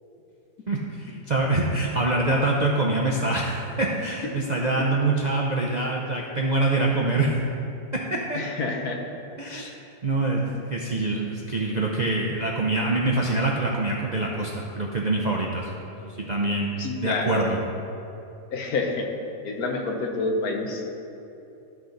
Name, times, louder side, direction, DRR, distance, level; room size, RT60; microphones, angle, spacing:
voice 1, 0.7-7.3 8.1-8.4 9.4-9.6 10.0-15.7 16.0-17.6, right 2 dB, 50° right, -2 dB, 0.5 m, -25 dB
voice 2, 8.3-9.0 9.5-9.7 16.8-17.4 18.5-19.1 19.4-20.8, left 3 dB, 75° left, 2 dB, 1.4 m, -28 dB
12.0 x 6.0 x 3.9 m, 2.8 s
omnidirectional pair, 1.6 m